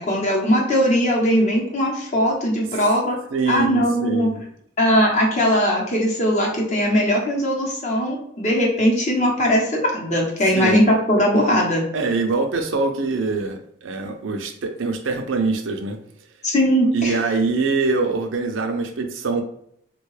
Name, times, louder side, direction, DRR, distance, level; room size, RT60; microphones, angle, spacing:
voice 1, 0.0-3.2 3.5-4.3 4.8-11.8 16.4-17.2, equal, 35° left, -1 dB, 0.8 m, -19 dB
voice 2, 3.3-4.4 10.6-10.8 11.9-16.0 16.9-19.4, right 4 dB, 75° right, 5 dB, 0.5 m, -23 dB
3.6 x 2.2 x 3.1 m, 0.69 s
head